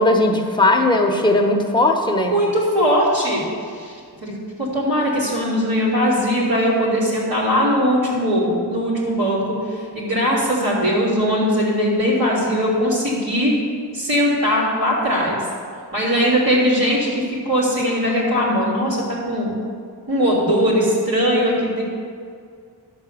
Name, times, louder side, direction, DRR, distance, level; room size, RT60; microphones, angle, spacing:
voice 1, 0.0-2.3, left 2 dB, 10° left, 1 dB, 1.0 m, -17 dB
voice 2, 2.3-3.5 3.7-4.0 4.2-4.3 4.6-13.6 13.9-15.4 15.9-19.6 20.1-21.8, equal, 65° right, -9 dB, 2.7 m, -20 dB
11.5 x 4.0 x 7.7 m, 2.1 s
wide cardioid pair, 105°, 38 cm